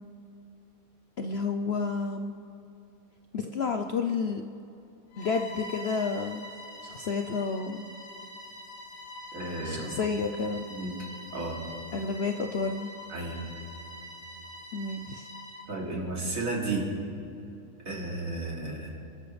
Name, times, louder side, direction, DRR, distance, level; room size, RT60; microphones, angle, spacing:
voice 1, 1.2-2.3 3.3-4.4 5.2-6.5 6.8-7.8 9.6-10.7 11.9-12.9 14.7-15.3, left 4 dB, 55° left, 5 dB, 0.7 m, -30 dB
Bowed string instrument, 5.1-15.7, left 1 dB, 80° left, 3.6 m, -44 dB
voice 2, 9.3-9.9 10.7-10.9 11.3-11.6 13.1-13.4 15.7-16.9 17.8-19.0, right 2 dB, 60° right, -3 dB, 3.3 m, -33 dB
28.5 x 12.0 x 3.3 m, 2.8 s
omnidirectional pair, 1.7 m